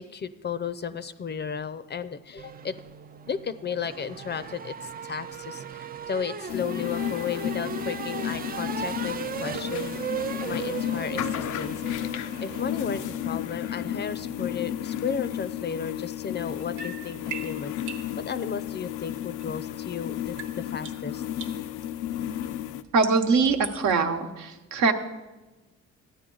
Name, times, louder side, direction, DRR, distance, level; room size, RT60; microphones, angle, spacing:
voice 1, 0.0-2.7 3.3-10.0 10.3-17.7 18.2-21.3, left 7 dB, 35° left, 13 dB, 0.5 m, -34 dB
sound 1, 2.4-14.9, right 8 dB, 30° right, 0.4 m, -37 dB
sound 2, 6.5-22.8, left 11 dB, 85° left, 0.5 m, -33 dB
sound 3, 15.5-19.9 20.2-23.9, right 6 dB, 85° right, 1.3 m, -43 dB
voice 2, 22.9-24.9, right 4 dB, 70° right, 6 dB, 1.0 m, -23 dB
13.5 x 9.5 x 3.8 m, 1.2 s
cardioid pair, 90°, 30 cm